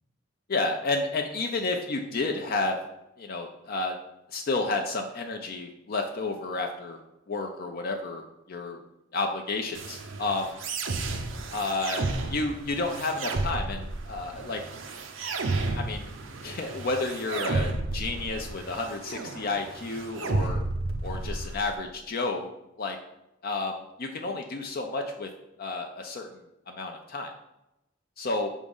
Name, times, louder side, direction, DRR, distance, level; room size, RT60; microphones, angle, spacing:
voice 1, 0.5-2.8 3.2-3.9 4.3-7.0 7.3-8.8 9.1-10.6 11.5-14.6 15.7-16.1 16.4-20.6 21.0-22.5 22.8-23.0 23.4-25.3 25.6-26.3 26.7-27.3 28.2-28.5, left 3 dB, 50° left, 3 dB, 0.5 m, -31 dB
sound 1, 9.7-21.7, right 2 dB, 75° right, 0.7 m, -32 dB
5.2 x 3.6 x 5.3 m, 0.90 s
head